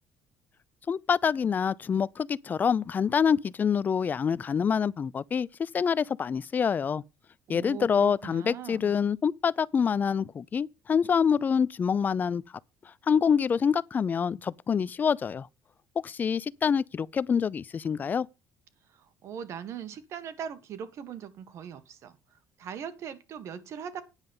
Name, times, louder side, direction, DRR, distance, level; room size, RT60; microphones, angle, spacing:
voice 1, 0.9-7.0 7.5-12.4 13.1-15.5 16.0-18.3, left 7 dB, 30° left, 0.4 m, -26 dB
voice 2, 7.5-8.9 18.9-22.2 22.6-24.0, right 8 dB, 55° right, 1.6 m, -40 dB
9.8 x 5.2 x 7.5 m
cardioid pair, 115°, 6 cm